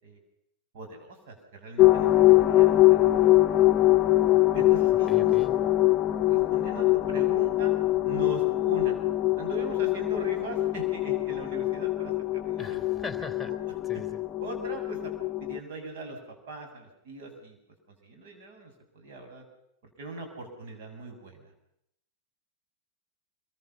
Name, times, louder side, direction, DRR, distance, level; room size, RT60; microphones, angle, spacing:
voice 1, 0.7-3.3 4.5-5.4 6.3-7.7 8.0-9.0 9.4-12.8 13.5-13.6 14.4-15.1 15.4-17.6 17.9-19.4 20.0-21.5, right 2 dB, 50° right, 3 dB, 7.2 m, -41 dB
sound 1, 1.8-15.6, left 16 dB, 30° left, 0.8 m, -23 dB
voice 2, 5.1-5.6 12.6-13.5 13.8-14.2, left 3 dB, ahead, 7 dB, 3.4 m, -40 dB
27.0 x 23.0 x 5.7 m, 0.77 s
figure-of-eight pair, 90°, 0 cm